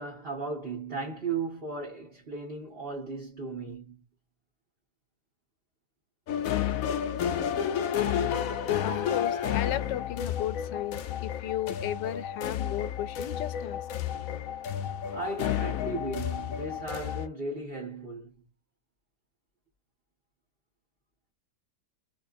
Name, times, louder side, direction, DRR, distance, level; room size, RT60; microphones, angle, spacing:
voice 1, 0.0-4.0 15.1-18.4, right 3 dB, 35° right, 1.7 m, -36 dB
sound 1, 6.3-17.3, left 9 dB, 65° left, 0.9 m, -31 dB
voice 2, 8.8-13.9, left 12 dB, 85° left, 1.3 m, -35 dB
3.6 x 3.2 x 2.6 m
omnidirectional pair, 1.9 m